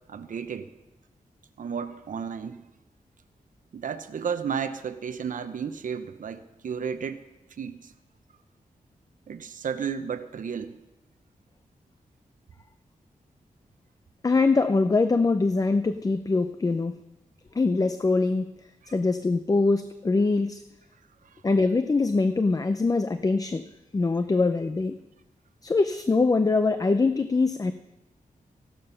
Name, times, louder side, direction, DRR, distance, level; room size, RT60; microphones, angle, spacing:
voice 1, 0.1-0.7 1.6-2.7 3.7-7.2 7.6-7.9 9.3-10.8 18.8-18.9 21.2-21.4, right 7 dB, 70° right, 9 dB, 0.7 m, -33 dB
voice 2, 14.2-17.0 17.5-18.5 18.9-20.6 21.4-23.6 23.9-25.0 25.6-27.7, left 3 dB, 25° left, 10 dB, 0.5 m, -23 dB
14.5 x 12.0 x 5.6 m, 0.99 s
wide cardioid pair, 120°, 14 cm